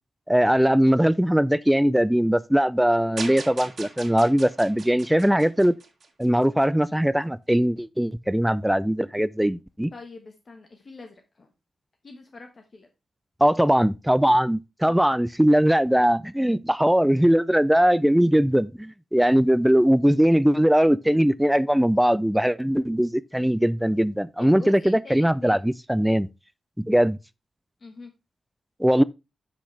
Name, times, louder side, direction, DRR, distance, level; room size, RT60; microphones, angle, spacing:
voice 1, 0.3-5.8 6.2-9.9 13.4-26.3 26.8-27.2 28.8-29.0, equal, 5° right, 0.4 m, -20 dB
sound 1, 3.2-6.5, right 4 dB, 55° right, 1.9 m, -39 dB
voice 2, 9.9-11.5 12.0-12.9 14.8-15.1 24.4-25.7 27.8-28.1, left 3 dB, 40° left, 1.3 m, -44 dB
10.0 x 6.1 x 3.3 m
wide cardioid pair, 140°, 0 cm